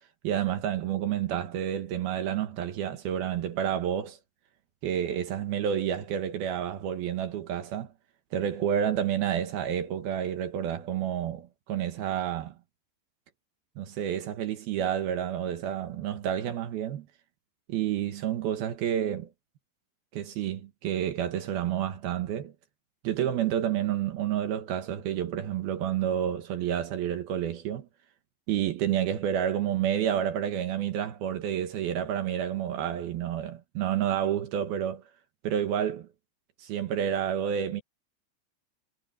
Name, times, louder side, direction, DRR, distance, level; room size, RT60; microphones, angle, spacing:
voice 1, 0.2-4.2 4.8-7.9 8.3-12.6 13.8-17.1 17.7-19.3 20.1-22.5 23.0-27.9 28.5-35.0 35.4-36.1 36.6-37.8, right 10 dB, 65° right, 2.9 m, -29 dB
omnidirectional pair, 5.1 m